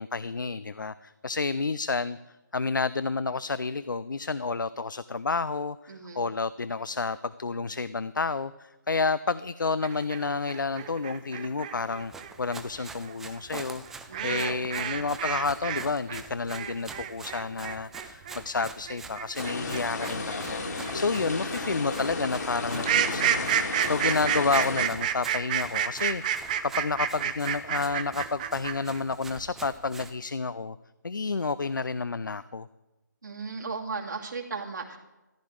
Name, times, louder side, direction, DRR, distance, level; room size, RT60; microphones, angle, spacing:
voice 1, 0.0-12.1 12.4-13.8 14.2-30.8 31.0-32.7, left 4 dB, 80° left, 15 dB, 0.5 m, -30 dB
voice 2, 5.9-6.2 14.1-14.8 21.4-21.5 33.2-35.0, right 4 dB, 70° right, -1 dB, 2.6 m, -36 dB
sound 1, 9.8-15.8 16.1-29.0, right 9 dB, 25° right, 0.8 m, -30 dB
Run, 11.9-30.2, right 4 dB, 5° right, 0.4 m, -46 dB
sound 2, 19.3-24.9, left 3 dB, 60° left, 2.3 m, -33 dB
14.5 x 10.0 x 4.8 m, 1.1 s
figure-of-eight pair, 155°, 10 cm